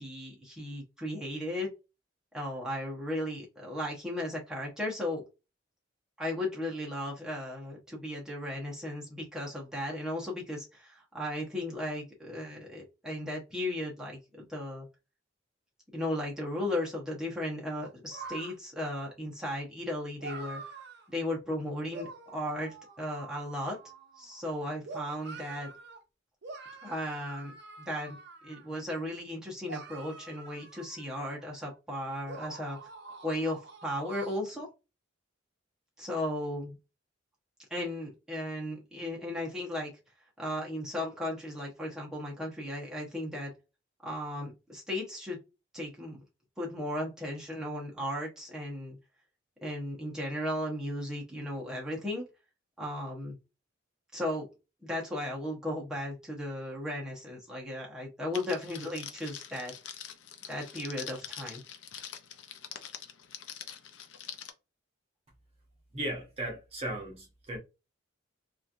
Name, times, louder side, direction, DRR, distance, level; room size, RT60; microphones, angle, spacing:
voice 1, 0.0-1.7 2.3-5.2 6.2-14.9 15.9-20.6 21.1-23.8 24.2-25.7 26.8-27.5 27.9-28.2 28.4-32.8 33.2-34.7 36.0-36.8 37.7-39.9 40.4-43.5 44.0-45.4 45.7-46.2 46.6-49.0 49.6-52.3 52.8-53.4 54.1-54.5 54.8-59.7 60.5-61.6, left 1 dB, 5° right, 0.9 m, -36 dB
sound 1, 17.8-18.5 20.2-21.1 21.9-24.4 24.8-26.0 26.4-28.8 29.7-31.6 32.3-34.4, right 3 dB, 55° right, 0.6 m, -46 dB
Crackle, 58.3-64.5, left 9 dB, 70° left, 0.5 m, -44 dB
voice 2, 65.9-67.6, right 1 dB, 30° right, 0.9 m, -36 dB
3.0 x 2.5 x 2.5 m
head